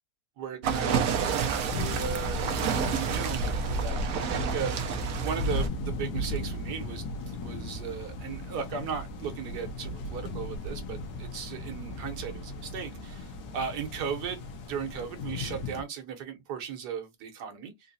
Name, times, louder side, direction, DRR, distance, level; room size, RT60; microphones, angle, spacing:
voice 1, 0.4-4.7 5.2-17.7, right 7 dB, 90° right, 1.5 m, -37 dB
sound 1, 0.6-5.7, right 5 dB, 65° right, 1.1 m, -29 dB
sound 2, 1.7-15.8, left 2 dB, 80° left, 1.4 m, -37 dB
3.9 x 2.6 x 2.6 m
omnidirectional pair, 1.7 m